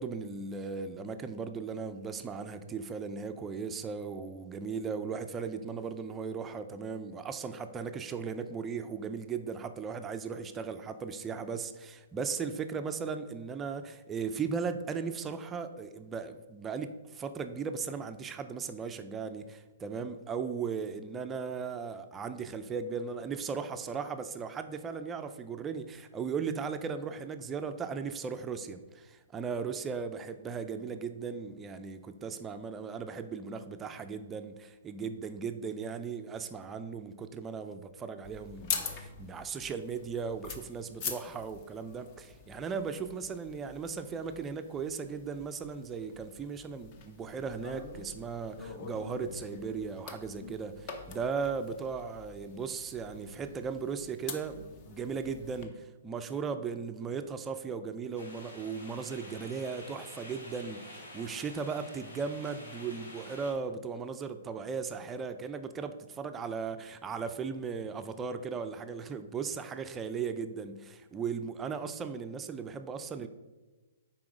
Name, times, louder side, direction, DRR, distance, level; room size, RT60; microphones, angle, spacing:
voice 1, 0.0-73.3, right 5 dB, 15° right, 8 dB, 0.4 m, -37 dB
sound 1, 38.2-55.6, left 5 dB, 40° left, 0.8 m, -44 dB
sound 2, 58.1-63.5, left 1 dB, 80° left, 2.2 m, -48 dB
5.8 x 4.3 x 5.0 m, 1.2 s
hypercardioid pair, 130°, 0 cm